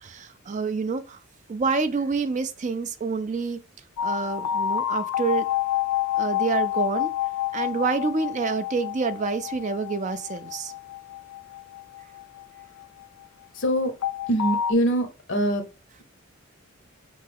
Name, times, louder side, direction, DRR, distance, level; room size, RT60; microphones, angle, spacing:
voice 1, 0.0-1.2 1.5-3.6 4.0-5.5 6.2-7.1 7.5-10.7, right 4 dB, 35° right, 0.4 m, -27 dB
sound 1, 4.0-13.0 14.0-14.7, left 11 dB, 85° left, 0.3 m, -28 dB
voice 2, 13.5-13.9 14.3-15.6, right 1 dB, 60° left, 0.9 m, -23 dB
4.4 x 3.3 x 3.4 m
head